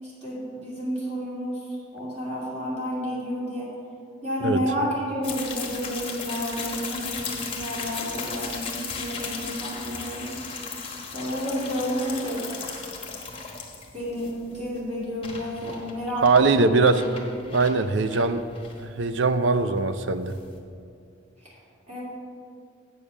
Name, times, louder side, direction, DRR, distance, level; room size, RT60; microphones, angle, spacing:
voice 1, 0.0-1.7 1.9-3.7 4.2-10.3 11.1-12.5 13.9-16.7 17.0-17.1 21.4-21.6 21.9-22.0, equal, 35° right, -7 dB, 2.5 m, -31 dB
sound 1, 5.2-20.6, left 5 dB, 25° left, 1.1 m, -36 dB
voice 2, 16.2-18.4 18.8-20.3, right 3 dB, 65° right, 11 dB, 0.5 m, -22 dB
8.5 x 7.0 x 6.3 m, 2.4 s
head